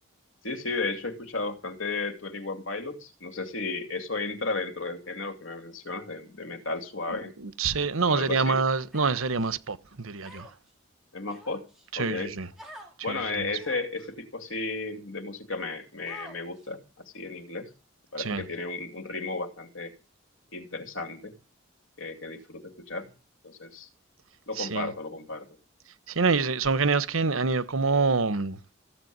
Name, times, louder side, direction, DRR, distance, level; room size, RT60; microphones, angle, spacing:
voice 1, 0.4-7.3 8.1-8.6 11.1-11.6 12.0-12.3 13.0-16.8 17.1-17.7 18.1-19.9 20.5-21.3 22.0-23.1 23.4-23.9 24.5-25.5, left 3 dB, 70° left, 2.7 m, -34 dB
voice 2, 7.4-10.5 11.9-12.5 13.1-13.5 18.2-18.4 24.5-24.9 26.1-28.7, right 4 dB, 90° right, 1.1 m, -26 dB
Human voice, 8.9-9.5 10.2-10.7 11.3-11.9 12.6-12.9 13.6-14.0 14.7-14.8 16.1-16.7, equal, ahead, 5.1 m, -47 dB
15.5 x 8.1 x 9.4 m
head